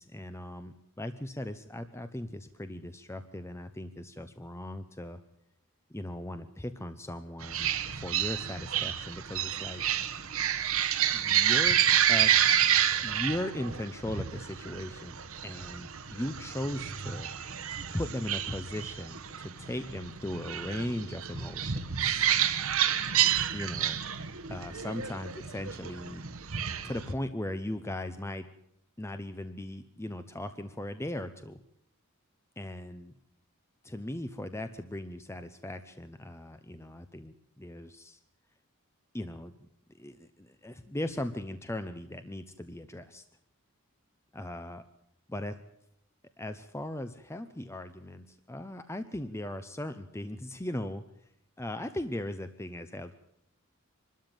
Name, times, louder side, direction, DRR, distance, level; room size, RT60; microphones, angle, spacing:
voice 1, 0.0-5.2 5.9-9.8 11.1-11.8 12.1-12.3 13.0-17.3 17.9-22.3 23.5-24.0 24.5-26.2 26.8-28.5 29.0-31.6 32.6-33.1 33.8-38.2 39.1-39.5 39.9-43.2 44.3-44.8 45.3-45.5 46.4-51.0 51.6-53.1, left 1 dB, 10° left, 10 dB, 0.7 m, -38 dB
sound 1, 7.4-27.1, right 10 dB, 70° right, 1.3 m, -29 dB
24.5 x 13.0 x 9.0 m, 0.76 s
head